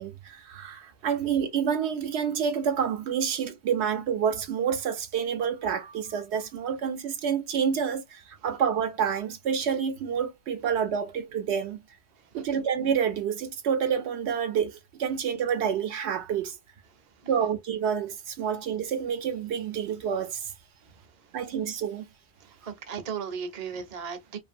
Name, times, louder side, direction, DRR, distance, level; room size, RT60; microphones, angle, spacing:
voice 1, 0.0-11.8 12.3-16.6 17.3-20.5 21.3-22.0, right 7 dB, 75° right, 0.8 m, -28 dB
voice 2, 12.3-12.6 16.9-17.3 20.9-21.3 22.4-24.4, right 6 dB, 40° right, 0.6 m, -38 dB
2.9 x 2.5 x 2.4 m
omnidirectional pair, 1.2 m